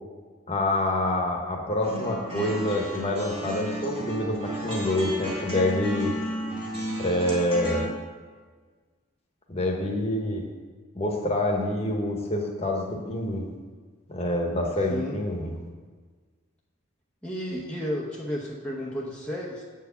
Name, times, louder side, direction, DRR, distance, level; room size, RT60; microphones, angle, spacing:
voice 1, 0.5-6.2 7.0-7.9 9.5-10.4 10.9-13.5 14.1-15.5, left 1 dB, 30° left, 0 dB, 1.1 m, -27 dB
sound 1, 1.8-7.8, right 1 dB, 25° right, 2.0 m, -33 dB
voice 2, 17.2-19.6, equal, 5° left, -5 dB, 0.8 m, -32 dB
8.3 x 4.6 x 6.8 m, 1.5 s
head